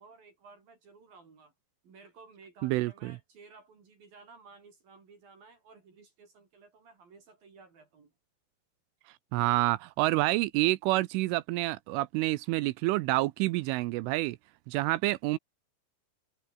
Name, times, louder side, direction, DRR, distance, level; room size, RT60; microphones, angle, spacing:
voice 1, 0.0-1.5 1.8-8.1, right 4 dB, 45° right, 5.7 m, -55 dB
voice 2, 2.6-3.2 9.3-14.4 14.7-15.4, right 19 dB, 80° right, 3.0 m, -28 dB
omnidirectional pair, 6.0 m